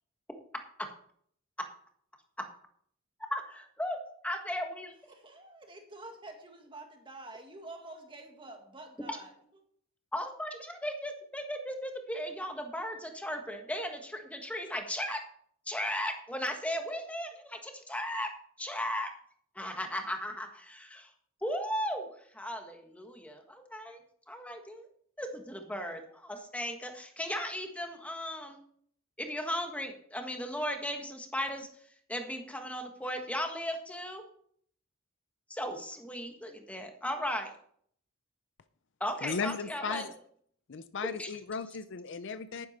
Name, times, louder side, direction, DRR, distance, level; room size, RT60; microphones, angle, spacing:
voice 1, 3.3-4.0 4.2-4.9 10.1-15.2 15.6-18.3 18.6-19.1 19.5-21.1 21.4-24.0 24.3-24.9 25.2-28.6 29.2-34.2 35.5-37.5 39.0-40.0 41.0-41.3, equal, 5° left, 4 dB, 1.4 m, -36 dB
voice 2, 5.1-9.3, right 2 dB, 25° right, 3 dB, 1.9 m, -48 dB
voice 3, 39.2-40.1 40.7-42.7, left 5 dB, 60° left, 12 dB, 0.6 m, -36 dB
10.5 x 10.0 x 4.3 m, 0.62 s
head